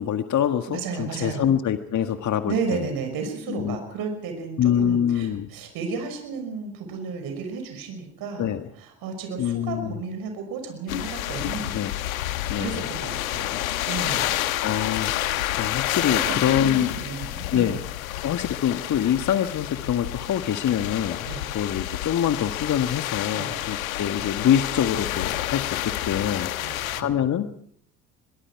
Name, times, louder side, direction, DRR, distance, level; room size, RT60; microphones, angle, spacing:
voice 1, 0.0-2.8 3.5-3.8 4.6-5.5 8.4-8.6 9.4-10.0 11.7-11.9 12.5-12.8 14.6-16.9 17.5-17.8 18.2-21.3 21.5-27.5, left 9 dB, 45° left, 7 dB, 1.8 m, -25 dB
voice 2, 0.7-1.5 2.5-11.7 12.6-13.6 13.9-14.4 16.1-17.8 21.3-21.4 23.3-23.8 26.6-27.1, right 5 dB, 60° right, 5 dB, 6.0 m, -33 dB
sound 1, 10.9-27.0, left 14 dB, 85° left, 1.3 m, -29 dB
25.0 x 22.5 x 4.8 m, 0.64 s
hypercardioid pair, 60°, 41 cm